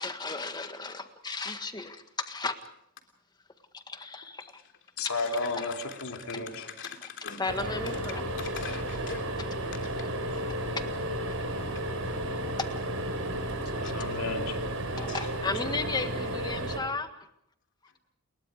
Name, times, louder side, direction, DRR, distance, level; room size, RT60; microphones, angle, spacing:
voice 1, 0.0-2.6 3.7-4.5 7.0-7.1 7.4-8.2 11.2-11.3 15.0-17.1, left 3 dB, 20° left, 8 dB, 1.7 m, -34 dB
voice 2, 5.0-6.7 13.8-14.6, left 3 dB, 80° left, 4 dB, 3.0 m, -33 dB
voice 3, 6.3-7.4 8.4-9.2 15.0-15.2, left 5 dB, 55° left, 5 dB, 3.3 m, -41 dB
sound 1, 7.5-16.8, right 1 dB, 70° right, 5.1 m, -33 dB
30.0 x 21.5 x 5.1 m, 0.73 s
head